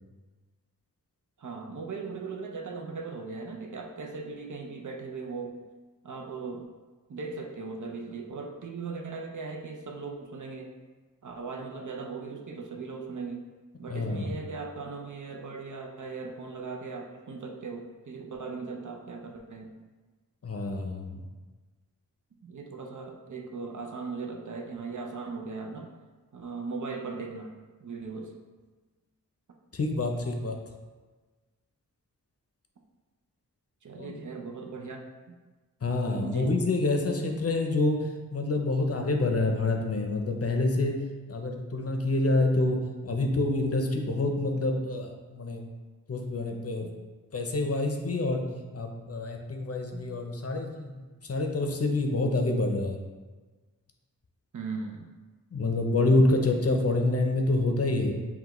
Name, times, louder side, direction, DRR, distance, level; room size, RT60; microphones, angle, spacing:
voice 1, 1.4-5.6 6.0-6.6 7.1-10.7 11.2-13.4 13.8-19.7 22.4-25.9 26.3-27.5 27.8-28.3 33.8-35.4 36.2-36.5 44.4-44.5 46.8-47.0 49.9-50.2 54.5-55.1, right 4 dB, 60° right, 2 dB, 0.6 m, -38 dB
voice 2, 13.9-14.4 20.4-21.2 29.7-30.6 34.0-34.2 35.8-41.0 41.3-42.8 43.0-45.7 46.1-46.9 47.3-48.4 48.7-50.9 51.2-53.0 55.5-58.1, left 2 dB, 45° left, 2 dB, 0.6 m, -27 dB
5.6 x 2.3 x 3.0 m, 1.3 s
cardioid pair, 50°, 35 cm